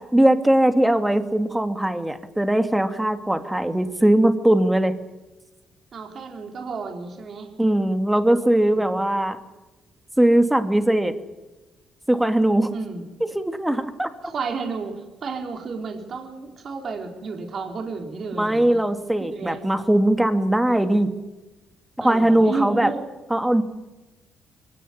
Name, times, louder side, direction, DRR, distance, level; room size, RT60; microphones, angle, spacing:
voice 1, 0.1-4.9 7.6-9.4 10.2-11.1 12.1-12.7 13.3-14.1 18.4-21.1 22.0-22.9 23.3-23.6, right 1 dB, 10° right, 9 dB, 2.4 m, -20 dB
voice 2, 5.9-7.5 8.8-9.0 12.7-13.0 14.2-18.8 19.2-19.6 22.0-23.1, right 4 dB, 55° right, 3 dB, 4.2 m, -32 dB
22.5 x 17.5 x 9.5 m, 1.1 s
cardioid pair, 90°, 0 cm